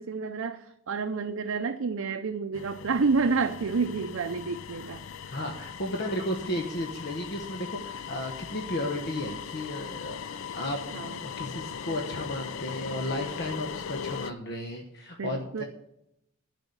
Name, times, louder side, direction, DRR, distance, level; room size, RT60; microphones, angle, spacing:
voice 1, 0.0-5.4 10.9-11.2 15.2-15.6, right 4 dB, 70° right, 6 dB, 0.5 m, -29 dB
sound 1, 2.5-14.3, left 7 dB, 65° left, 0.4 m, -39 dB
voice 2, 5.3-10.2 10.5-15.6, left 1 dB, 50° left, 3 dB, 1.0 m, -34 dB
11.0 x 5.0 x 8.0 m, 0.82 s
head